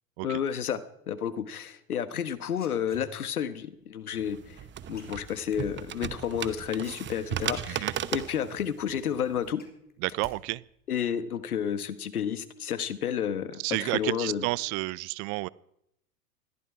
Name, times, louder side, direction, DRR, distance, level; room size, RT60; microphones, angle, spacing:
voice 1, 0.2-0.8 1.1-4.6 4.9-9.6 10.9-14.4, left 8 dB, 85° left, 14 dB, 1.4 m, -31 dB
sound 1, 2.2-3.5 5.0-5.6 7.1-7.2 7.4-8.3 8.7-8.8 9.1-10.4 10.6-11.1, left 5 dB, 20° left, 3.4 m, -50 dB
sound 2, 4.1-9.5, right 10 dB, 25° right, 0.9 m, -36 dB
voice 2, 10.0-10.6 13.6-15.5, right 23 dB, 45° right, 23 dB, 0.6 m, -31 dB
21.0 x 14.5 x 4.8 m, 0.76 s
hypercardioid pair, 95°, 43 cm